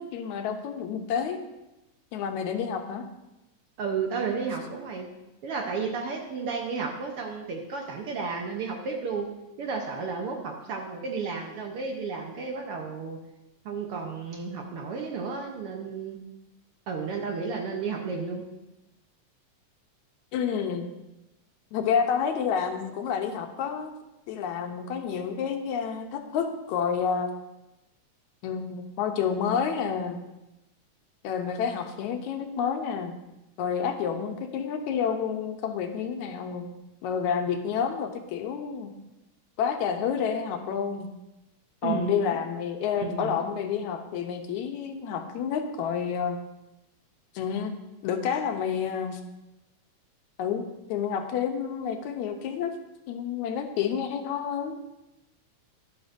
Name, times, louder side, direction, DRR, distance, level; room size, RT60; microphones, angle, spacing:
voice 1, 0.0-1.4 2.1-3.1 20.3-20.9 21.7-23.9 24.3-27.3 28.4-30.2 31.2-33.1 33.6-36.7 37.0-38.9 39.6-41.1 41.8-46.4 47.3-47.8 48.0-49.2 50.4-52.7 53.1-54.8, left 7 dB, 85° left, 5 dB, 2.2 m, -29 dB
voice 2, 3.8-5.1 5.4-9.3 9.6-13.2 13.6-16.2 16.9-18.4 41.8-42.4 43.0-43.4, right 5 dB, 65° right, 1 dB, 1.6 m, -32 dB
12.5 x 11.0 x 2.6 m, 0.95 s
omnidirectional pair, 3.3 m